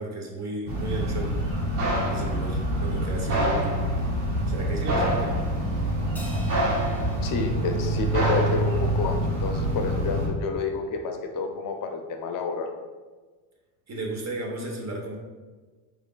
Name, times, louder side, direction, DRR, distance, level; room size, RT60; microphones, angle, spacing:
voice 1, 0.0-1.4 2.1-3.7 4.5-5.4 13.9-15.2, right 2 dB, 35° right, 0 dB, 0.9 m, -33 dB
sound 1, 0.7-10.3, right 1 dB, 70° right, 1.4 m, -26 dB
Crash cymbal, 6.2-8.8, equal, 5° left, 0.3 m, -46 dB
voice 2, 7.2-12.7, left 4 dB, 40° left, 4 dB, 0.6 m, -29 dB
4.0 x 3.3 x 2.2 m, 1.3 s
supercardioid pair, 90°, 49 cm